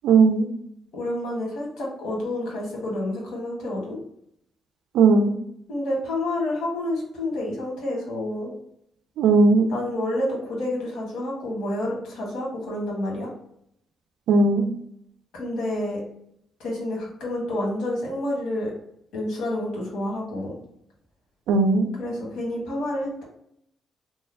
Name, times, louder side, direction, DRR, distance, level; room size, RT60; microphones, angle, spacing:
voice 1, 0.0-0.5 4.9-5.3 9.2-9.7 14.3-14.7 21.5-21.9, right 4 dB, 85° right, 6 dB, 0.4 m, -17 dB
voice 2, 0.9-4.0 5.7-8.5 9.7-13.3 15.3-16.0 16.6-18.7 19.1-20.5 22.0-23.2, left 1 dB, 80° left, -2 dB, 1.3 m, -29 dB
3.2 x 2.1 x 3.3 m, 0.73 s
cardioid pair, 90°, 0 cm